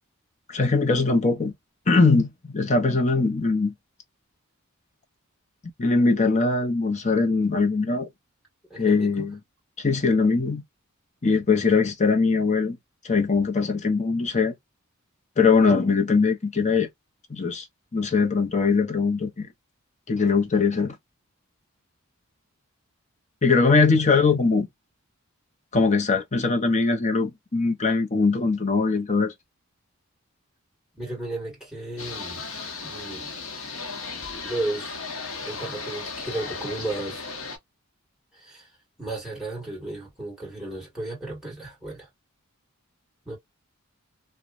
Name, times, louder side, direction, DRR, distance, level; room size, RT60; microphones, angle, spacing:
voice 1, 0.5-1.5 1.9-3.7 5.8-8.1 8.8-9.4 9.8-10.6 11.2-12.8 13.0-14.5 15.4-16.9 17.3-17.6 17.9-19.5 20.1-20.9 23.4-24.7 25.7-29.3, left 4 dB, 35° left, 0.7 m, -21 dB
voice 2, 8.7-9.3 23.9-24.4 30.9-32.5 32.8-33.3 34.4-35.0 35.4-37.3 38.3-38.7 39.0-42.1 43.3-43.4, right 2 dB, ahead, 1.8 m, -34 dB
sound 1, 32.0-37.6, left 4 dB, 70° left, 0.9 m, -35 dB
3.0 x 2.2 x 2.4 m
head